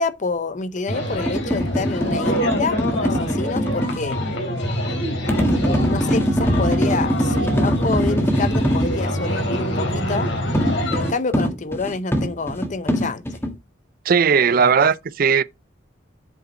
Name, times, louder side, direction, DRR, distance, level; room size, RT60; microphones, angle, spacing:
voice 1, 0.0-4.3 5.9-10.3 10.9-13.2 14.6-14.9, left 3 dB, 40° left, 0.6 m, -27 dB
sound 1, 0.9-11.1, equal, 75° left, 3.1 m, -25 dB
sound 2, 1.1-4.0 5.3-9.0 10.5-13.5, equal, 15° left, 1.5 m, -22 dB
voice 2, 14.1-15.4, right 6 dB, 50° right, 0.5 m, -17 dB
8.1 x 5.0 x 4.3 m
head